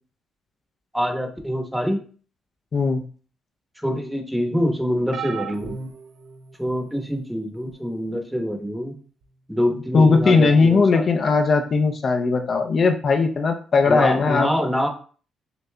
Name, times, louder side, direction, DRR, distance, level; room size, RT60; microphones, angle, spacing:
voice 1, 0.9-2.0 3.8-5.8 6.6-8.9 9.5-11.2 13.9-14.9, equal, 5° right, 3 dB, 0.9 m, -25 dB
voice 2, 2.7-3.0 9.9-14.5, left 4 dB, 45° left, 5 dB, 0.5 m, -18 dB
sound 1, 5.1-6.9 7.7-7.9 9.2-9.3, right 6 dB, 70° right, 0.6 m, -35 dB
6.7 x 2.6 x 2.2 m, 0.41 s
cardioid pair, 90°, 0 cm